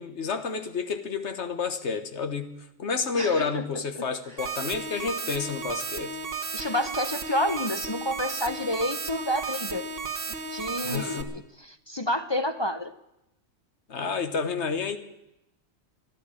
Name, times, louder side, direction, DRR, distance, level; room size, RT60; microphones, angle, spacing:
voice 1, 0.0-2.5 2.8-6.2 10.8-11.3 13.9-15.0, left 5 dB, 60° left, 9 dB, 1.5 m, -30 dB
voice 2, 3.1-3.6 4.0-4.1 6.5-9.8 10.5-12.9, left 1 dB, 30° left, 8 dB, 0.5 m, -29 dB
sound 1, 4.4-11.2, right 4 dB, 45° right, 1.3 m, -34 dB
13.5 x 11.5 x 8.9 m, 0.89 s
omnidirectional pair, 1.4 m